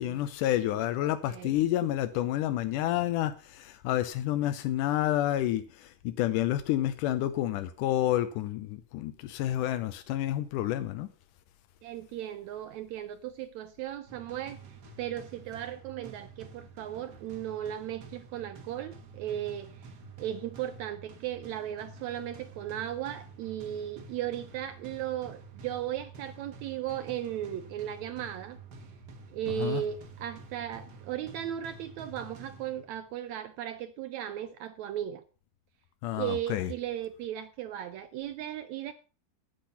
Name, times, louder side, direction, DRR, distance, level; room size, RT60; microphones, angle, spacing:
voice 1, 0.0-11.1 29.5-29.8 36.0-36.7, left 13 dB, 85° left, 2.3 m, -29 dB
voice 2, 1.0-1.5 11.8-14.6 15.0-19.8 20.2-28.6 29.3-35.2 36.1-38.9, right 11 dB, 75° right, 1.8 m, -36 dB
sound 1, 14.1-33.1, right 4 dB, 50° right, 1.3 m, -49 dB
10.5 x 8.5 x 5.7 m
omnidirectional pair, 3.6 m